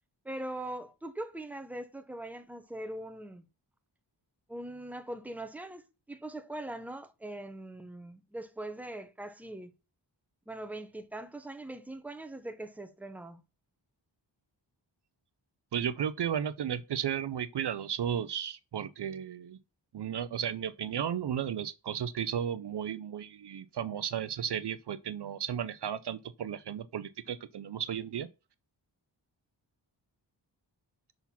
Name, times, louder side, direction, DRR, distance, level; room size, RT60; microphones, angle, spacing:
voice 1, 0.2-3.4 4.5-9.7 10.5-13.4, right 1 dB, 5° right, 0.8 m, -41 dB
voice 2, 15.7-19.6 19.9-28.3, right 9 dB, 65° right, 0.5 m, -34 dB
5.8 x 4.0 x 5.8 m
wide cardioid pair, 110°, 46 cm